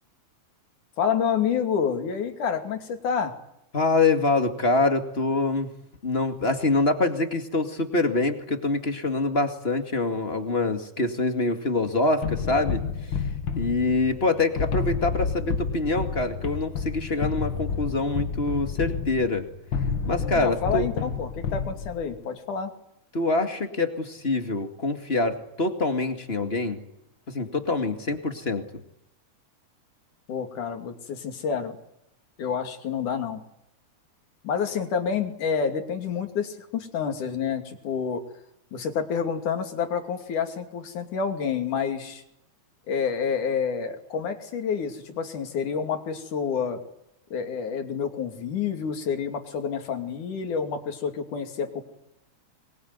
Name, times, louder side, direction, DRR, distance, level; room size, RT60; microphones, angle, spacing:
voice 1, 1.0-3.3 20.4-22.7 30.3-31.8 32.4-33.4 34.4-38.2 38.7-42.2 42.9-46.8 47.3-51.9, left 6 dB, 85° left, 6 dB, 4.2 m, -28 dB
voice 2, 3.7-5.7 6.0-13.2 13.6-19.5 20.1-20.9 23.1-26.8 27.3-28.6, left 2 dB, 20° left, 7 dB, 2.0 m, -25 dB
sound 1, 12.2-22.2, left 6 dB, 45° left, 2.1 m, -30 dB
23.5 x 23.0 x 9.5 m, 0.79 s
omnidirectional pair, 3.4 m